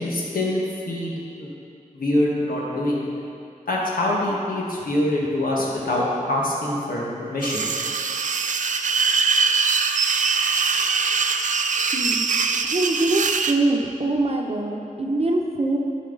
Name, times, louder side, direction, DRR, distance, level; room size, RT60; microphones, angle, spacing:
voice 1, 0.0-1.5 1.9-3.0 3.7-7.7, left 1 dB, 85° left, -4 dB, 1.4 m, -24 dB
sound 1, 7.4-13.6, right 5 dB, 60° right, 0.4 m, -22 dB
voice 2, 11.9-12.3 12.6-15.8, right 2 dB, 45° right, 1 dB, 0.9 m, -23 dB
11.0 x 4.3 x 3.9 m, 2.6 s
wide cardioid pair, 65°, 14 cm